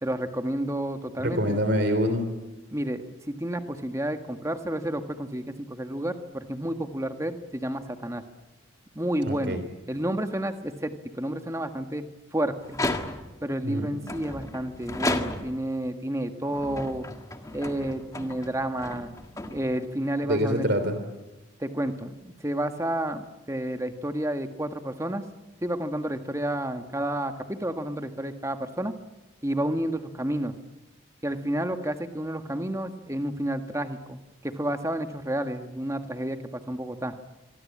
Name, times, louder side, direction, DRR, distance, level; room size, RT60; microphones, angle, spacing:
voice 1, 0.0-1.6 2.7-8.2 8.9-9.6 9.9-12.8 13.4-17.1 17.5-19.2 19.4-20.6 21.6-25.2 25.6-28.9 29.4-30.5 31.2-37.1, right 1 dB, 15° right, 7 dB, 1.6 m, -30 dB
voice 2, 1.2-2.3 9.2-9.6 13.6-13.9 20.2-21.0, equal, 55° right, 7 dB, 3.1 m, -25 dB
sound 1, 12.6-13.5 14.0-15.7 16.4-20.0, left 2 dB, 15° left, 1.8 m, -33 dB
26.0 x 24.0 x 8.6 m, 1.1 s
head